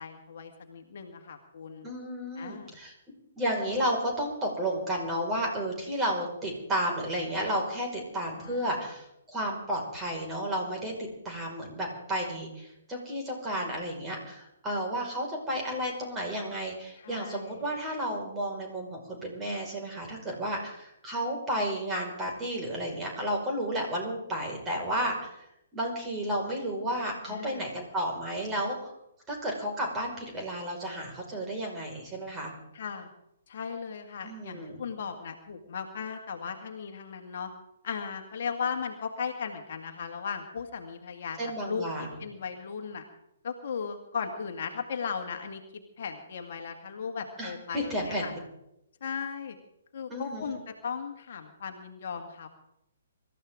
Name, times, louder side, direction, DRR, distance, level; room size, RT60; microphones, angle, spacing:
voice 1, 0.0-1.9 2.4-2.8 8.4-8.7 17.0-17.6 27.2-27.7 32.7-33.1 33.5-37.5 37.8-41.4 41.7-43.0 43.4-48.3 49.0-49.6 49.9-52.5, left 6 dB, 50° left, 4 dB, 2.0 m, -37 dB
voice 2, 1.8-2.9 3.4-25.5 25.7-28.9 29.3-32.5 34.2-34.8 41.4-42.2 47.4-48.3 50.1-50.5, equal, 15° right, 0 dB, 5.2 m, -32 dB
25.5 x 14.0 x 3.7 m, 0.82 s
figure-of-eight pair, 125°, 0 cm